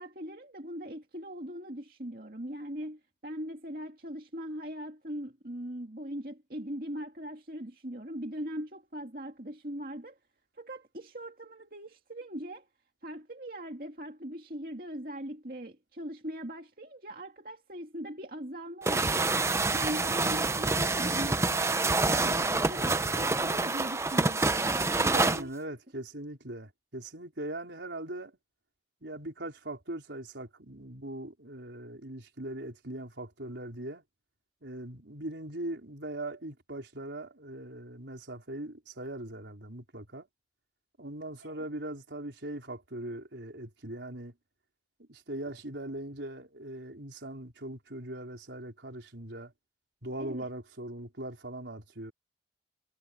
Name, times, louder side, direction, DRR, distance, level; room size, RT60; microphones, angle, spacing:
voice 1, 0.0-10.2 10.6-12.7 13.0-19.3 19.7-21.7 22.0-24.6 25.0-25.5 41.4-41.6 50.2-50.5, equal, 50° right, 2.4 m, -40 dB
sound 1, 18.8-25.4, right 3 dB, 15° right, 0.6 m, -27 dB
voice 2, 25.1-28.4 29.0-34.0 34.6-40.3 41.0-44.3 45.1-49.5 50.0-52.1, right 1 dB, 80° right, 4.5 m, -40 dB
head